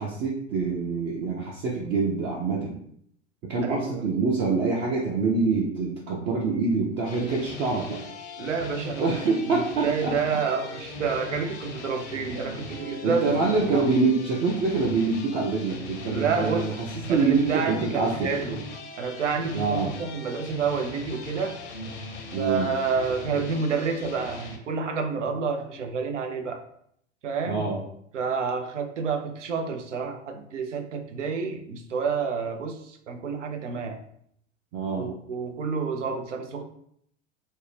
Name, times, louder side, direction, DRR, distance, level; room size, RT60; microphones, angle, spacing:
voice 1, 0.0-2.8 3.5-8.0 9.0-10.1 13.0-18.3 19.5-19.9 22.3-22.7 27.4-27.8 34.7-35.1, right 4 dB, 30° right, -3 dB, 0.5 m, -25 dB
voice 2, 3.6-4.0 8.4-9.0 9.5-13.4 13.7-13.9 16.1-16.7 17.1-18.6 19.0-21.6 22.4-26.6 27.2-27.6 28.1-34.0 34.9-36.6, right 5 dB, 85° right, 6 dB, 0.5 m, -29 dB
sound 1, 7.0-24.6, left 2 dB, 70° left, 0.7 m, -39 dB
2.6 x 2.1 x 3.1 m, 0.69 s
figure-of-eight pair, 90°, 35 cm